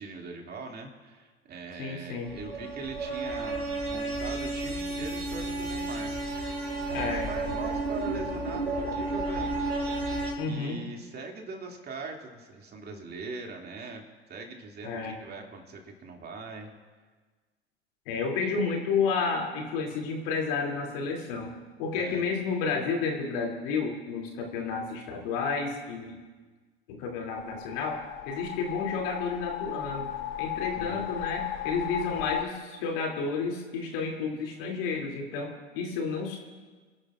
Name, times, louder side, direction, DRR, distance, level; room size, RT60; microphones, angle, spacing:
voice 1, 0.0-6.2 6.9-9.6 10.4-14.0 14.3-16.7 21.9-22.2 30.7-31.1, right 3 dB, 30° right, 1 dB, 2.4 m, -41 dB
voice 2, 1.8-2.3 6.9-7.3 10.4-10.9 14.8-15.2 18.1-21.5 21.8-26.2 26.9-30.1 30.4-36.4, left 5 dB, 60° left, 0 dB, 2.8 m, -31 dB
sound 1, 2.2-10.3, right 2 dB, 85° right, 4.0 m, -32 dB
sound 2, 27.4-32.4, left 12 dB, 45° left, 0.7 m, -35 dB
28.5 x 11.5 x 2.5 m, 1.4 s
figure-of-eight pair, 80°, 31 cm